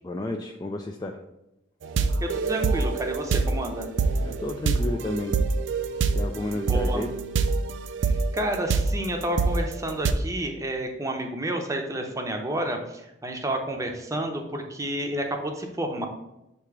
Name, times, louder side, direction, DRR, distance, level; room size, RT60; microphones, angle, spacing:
voice 1, 0.0-1.2 4.2-5.4 6.1-7.1, left 2 dB, 20° left, 2 dB, 0.3 m, -31 dB
sound 1, 1.8-10.1, right 4 dB, 75° right, 0.4 m, -25 dB
voice 2, 2.2-3.9 6.5-7.0 8.0-16.1, right 1 dB, 15° right, 3 dB, 0.7 m, -30 dB
7.0 x 2.9 x 4.7 m, 0.90 s
head